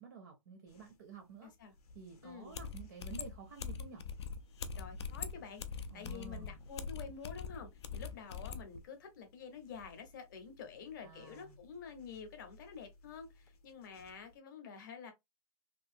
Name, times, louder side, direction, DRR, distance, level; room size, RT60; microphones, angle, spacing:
voice 1, 0.0-4.0 5.9-6.6 11.0-11.6, right 5 dB, 30° right, 0.5 m, -52 dB
sound 1, 0.7-14.4, left 2 dB, 85° left, 0.8 m, -60 dB
voice 2, 1.4-1.7 2.2-2.6 4.8-15.1, left 6 dB, 30° left, 0.8 m, -49 dB
sound 2, 2.5-8.6, left 6 dB, 45° left, 0.4 m, -43 dB
2.8 x 2.6 x 2.5 m
hypercardioid pair, 165°, 19 cm